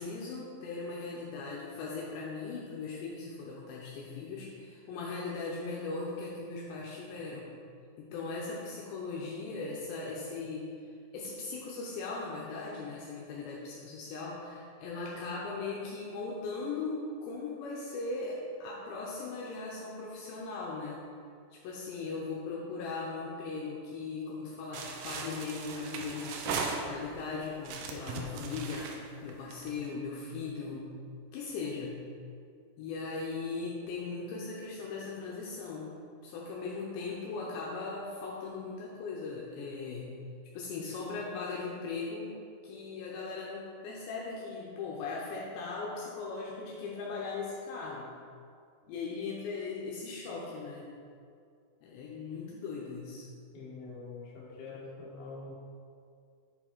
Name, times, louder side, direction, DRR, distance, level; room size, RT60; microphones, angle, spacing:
voice 1, 0.0-7.5 8.0-21.0 21.5-30.9 31.3-32.1 32.8-35.9 36.2-40.2 40.5-42.4 42.6-48.1 48.9-50.9 51.8-53.3, left 4 dB, 80° left, -4 dB, 2.8 m, -39 dB
sound 1, 24.7-27.2 27.6-29.9, right 5 dB, 85° right, 2.6 m, -38 dB
voice 2, 53.5-55.5, left 3 dB, 60° left, -6 dB, 2.2 m, -45 dB
7.5 x 4.3 x 4.5 m, 2.3 s
omnidirectional pair, 5.4 m